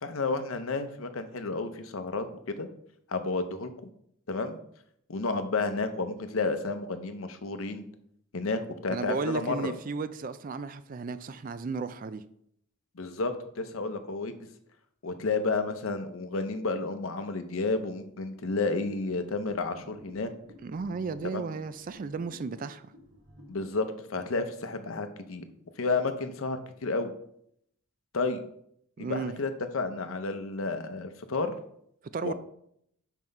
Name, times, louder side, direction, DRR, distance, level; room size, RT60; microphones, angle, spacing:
voice 1, 0.0-2.7 3.1-3.7 4.3-4.6 5.1-7.9 8.3-9.7 13.0-14.3 15.0-20.3 21.3-21.4 23.5-25.4 25.8-27.1 28.1-28.4 29.0-31.6 32.2-32.3, left 3 dB, 70° left, 0.7 m, -31 dB
voice 2, 8.9-12.2 20.6-22.8 29.0-29.3 32.1-32.3, right 4 dB, 40° right, 0.3 m, -34 dB
sound 1, 18.7-23.8, equal, 70° right, 1.5 m, -52 dB
5.7 x 4.6 x 5.3 m
head